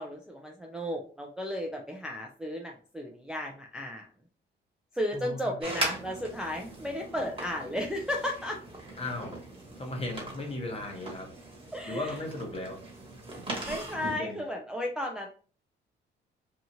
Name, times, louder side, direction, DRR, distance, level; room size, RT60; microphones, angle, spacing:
voice 1, 0.0-4.1 4.9-8.6 11.7-12.2 13.7-15.3, left 1 dB, 5° right, 0 dB, 0.4 m, -34 dB
voice 2, 5.1-5.5 9.0-9.4 9.8-11.3 11.8-12.8 14.0-14.4, left 2 dB, 30° left, 2 dB, 1.0 m, -36 dB
sound 1, 5.6-14.2, right 2 dB, 30° right, 1.2 m, -40 dB
2.8 x 2.4 x 2.7 m, 0.41 s
cardioid pair, 90°, 20 cm